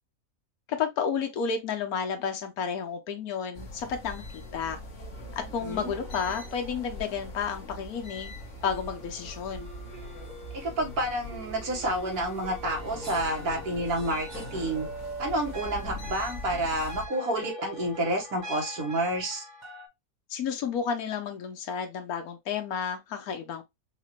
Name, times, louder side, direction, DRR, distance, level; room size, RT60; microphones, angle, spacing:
voice 1, 0.7-4.8 5.4-8.3 8.6-9.7 20.3-23.6, left 6 dB, 80° left, 1.4 m, -31 dB
sound 1, 3.5-17.1, left 1 dB, 55° left, 1.5 m, -42 dB
voice 2, 5.4-5.9 10.6-14.9 15.2-19.4, right 1 dB, 90° right, 2.0 m, -29 dB
sound 2, 5.7-8.2 8.6-19.9, right 1 dB, 35° right, 1.1 m, -44 dB
5.5 x 2.5 x 3.0 m
omnidirectional pair, 1.6 m